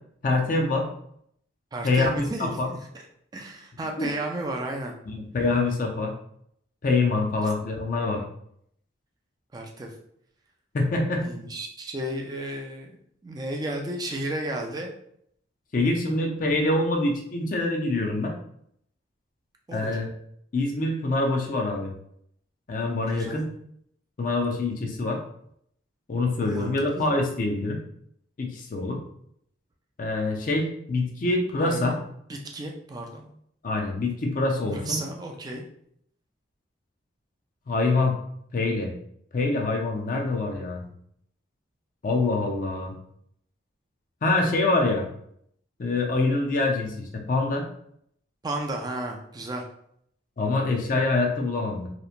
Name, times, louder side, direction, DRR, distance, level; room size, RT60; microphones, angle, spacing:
voice 1, 0.2-0.9 1.8-2.7 4.0-4.1 5.1-6.1 6.8-8.2 10.7-11.3 15.7-18.3 19.7-20.1 20.5-21.9 22.7-23.5 24.2-25.2 26.1-27.8 28.4-29.0 30.0-31.9 33.6-35.0 37.7-38.2 38.5-38.9 39.3-40.9 42.0-42.9 44.2-45.1 45.8-47.6 50.4-51.9, left 2 dB, 45° left, 2 dB, 0.4 m, -25 dB
voice 2, 1.7-3.1 3.3-5.0 7.4-7.5 9.5-9.9 11.2-13.0 13.2-14.9 19.7-20.0 23.1-23.4 26.5-27.1 31.6-32.0 32.3-33.3 34.7-35.7 48.4-49.6, right 1 dB, 20° right, 1 dB, 0.3 m, -33 dB
2.9 x 2.1 x 2.4 m, 0.70 s
head